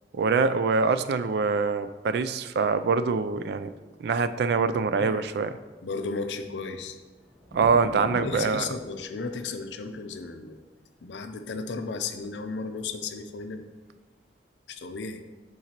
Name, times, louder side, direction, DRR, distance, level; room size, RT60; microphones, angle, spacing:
voice 1, 0.1-3.7 4.0-5.6 7.5-8.7, right 4 dB, 65° right, 11 dB, 0.3 m, -24 dB
voice 2, 5.8-7.0 8.1-10.6 11.0-13.7 14.7-15.2, left 4 dB, 75° left, 8 dB, 0.5 m, -34 dB
sound 1, 6.5-13.0 13.9-14.0, equal, 5° right, 0.7 m, -45 dB
10.5 x 3.9 x 2.9 m, 1.3 s
head